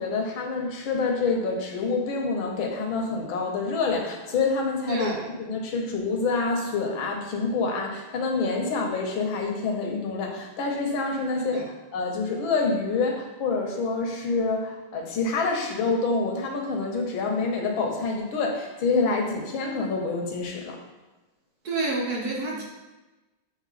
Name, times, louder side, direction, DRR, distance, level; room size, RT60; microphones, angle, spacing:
voice 1, 0.0-5.1 5.4-20.8, left 4 dB, 80° left, 2 dB, 1.7 m, -27 dB
voice 2, 4.9-5.2 11.4-11.6 21.6-22.6, right 3 dB, 60° right, -2 dB, 1.3 m, -29 dB
7.3 x 3.4 x 4.1 m, 1.1 s
omnidirectional pair, 2.2 m